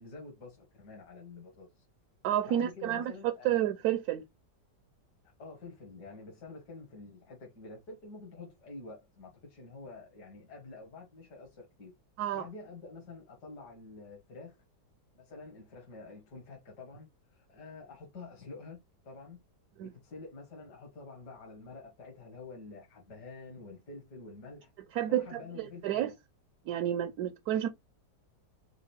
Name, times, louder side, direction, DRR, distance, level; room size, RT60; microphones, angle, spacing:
voice 1, 0.0-1.7 2.4-3.6 5.4-11.9 12.3-14.6 15.1-18.8 19.0-19.4 19.8-24.7 25.1-26.1, left 3 dB, 65° left, 2.0 m, -48 dB
voice 2, 2.2-4.2 12.2-12.5 19.8-19.9 24.9-26.1 26.7-27.7, right 11 dB, 70° right, 1.0 m, -30 dB
4.8 x 2.5 x 3.3 m
omnidirectional pair, 1.9 m